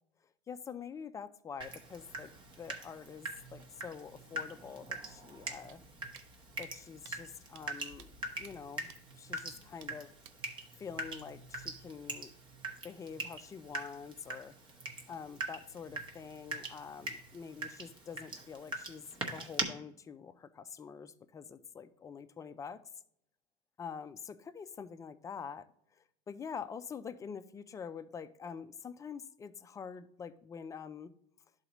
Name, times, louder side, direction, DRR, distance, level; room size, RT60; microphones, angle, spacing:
voice 1, 0.5-5.8 6.6-8.1 8.4-10.1 10.8-12.3 12.8-14.6 15.1-19.1 19.3-22.8 23.8-25.7 25.9-31.1, left 6 dB, 20° left, 0.4 m, -46 dB
Water tap faucet / Drip, 1.6-19.6, right 2 dB, 30° right, 1.1 m, -43 dB
sound 1, 5.7-5.8 6.1-6.3 6.6-6.7 7.0-7.1 7.5-7.6 8.0-8.1 8.4-8.5 8.9-9.0 9.4-9.5 9.8-9.9 10.2-10.4, right 11 dB, 75° right, 0.5 m, -55 dB
11.0 x 4.0 x 3.0 m
supercardioid pair, 115°, 15 cm